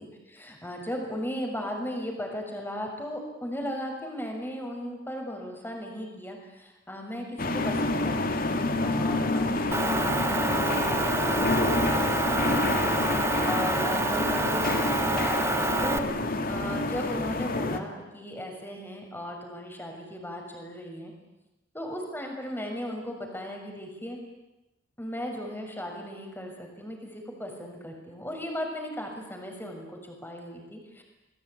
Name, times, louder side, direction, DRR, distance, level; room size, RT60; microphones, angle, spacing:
voice 1, 0.0-12.8 13.4-21.1 21.7-24.2 25.0-31.0, equal, 10° left, 2 dB, 6.6 m, -37 dB
sound 1, 7.4-17.8, left 2 dB, 50° left, 2.4 m, -28 dB
Motor vehicle (road) / Engine, 9.7-16.0, right 2 dB, 15° right, 1.4 m, -28 dB
29.5 x 21.0 x 9.6 m, 0.96 s
head